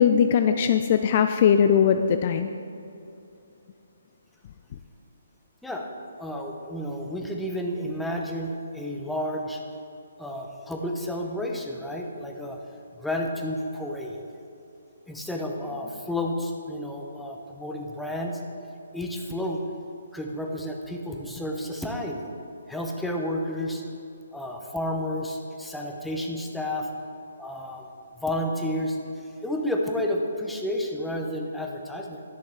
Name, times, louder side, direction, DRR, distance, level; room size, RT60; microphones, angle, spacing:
voice 1, 0.0-2.5, left 8 dB, 40° left, 8 dB, 0.3 m, -20 dB
voice 2, 6.2-9.6 10.2-12.6 13.0-14.2 15.1-18.4 18.9-19.6 20.1-22.2 22.7-23.8 24.3-26.9 27.4-27.9 28.2-29.0 29.4-32.2, left 1 dB, 5° left, 0 dB, 0.7 m, -31 dB
11.0 x 6.3 x 3.4 m, 2.6 s
figure-of-eight pair, 140°, 0 cm